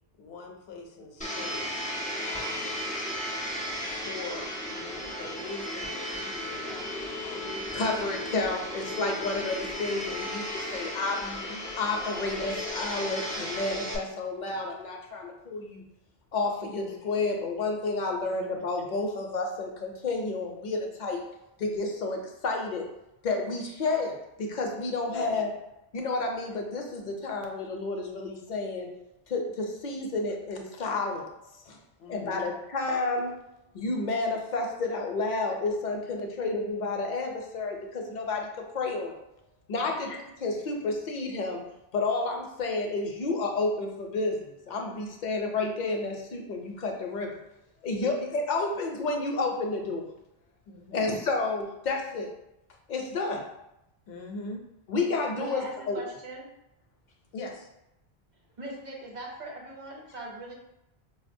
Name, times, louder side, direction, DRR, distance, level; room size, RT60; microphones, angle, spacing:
voice 1, 0.2-1.8 2.3-2.8 3.9-8.4 11.2-11.6 16.8-16.9 18.3-18.5 25.1-25.3 32.0-32.4 39.8-40.0 47.9-48.1 48.5-48.6 50.7-51.2 54.1-54.6 57.3-57.7, left 3 dB, 80° left, 2 dB, 0.8 m, -42 dB
Domestic sounds home sounds, 1.2-13.9, equal, 10° left, 0.4 m, -35 dB
voice 2, 7.7-11.2 11.8-15.8 16.3-21.2 21.6-22.9 23.2-25.5 25.9-28.9 29.3-31.3 31.6-31.8 32.1-33.3 33.7-39.2 39.7-41.6 41.9-47.3 47.8-50.0 50.9-52.3 52.9-53.4 54.9-56.0, left 3 dB, 60° left, 2 dB, 0.6 m, -30 dB
voice 3, 55.4-56.5 58.6-60.5, right 2 dB, 50° right, -1 dB, 0.7 m, -40 dB
4.6 x 2.1 x 2.5 m, 0.88 s
omnidirectional pair, 1.1 m